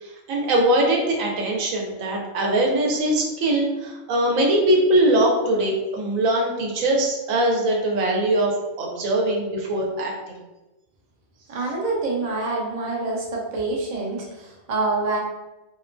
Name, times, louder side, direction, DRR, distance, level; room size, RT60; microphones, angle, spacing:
voice 1, 0.0-10.1, right 1 dB, 80° right, 0 dB, 1.0 m, -21 dB
voice 2, 11.5-15.2, right 3 dB, 50° right, -2 dB, 0.5 m, -26 dB
2.6 x 2.2 x 2.4 m, 1.1 s
omnidirectional pair, 1.4 m